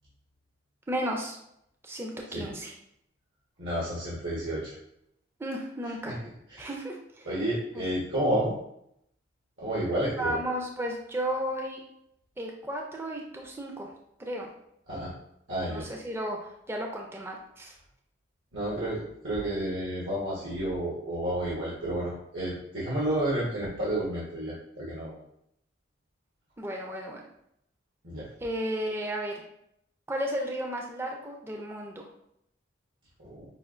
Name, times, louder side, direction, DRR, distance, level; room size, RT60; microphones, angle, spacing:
voice 1, 0.9-1.4 1.8-2.7 5.4-6.2 6.6-7.3 7.7-7.8 10.2-11.8 12.4-13.9 14.2-14.5 15.7-17.7 26.6-27.2 28.4-29.3 30.1-32.0, right 1 dB, 10° right, 0 dB, 0.4 m, -33 dB
voice 2, 3.6-4.7 6.0-6.1 6.5-6.7 7.2-8.5 9.6-10.4 14.9-15.1 15.5-15.8 18.5-25.2 28.0-28.2 33.2-33.4, right 1 dB, 80° right, -9 dB, 1.2 m, -31 dB
5.4 x 2.5 x 2.4 m, 0.75 s
head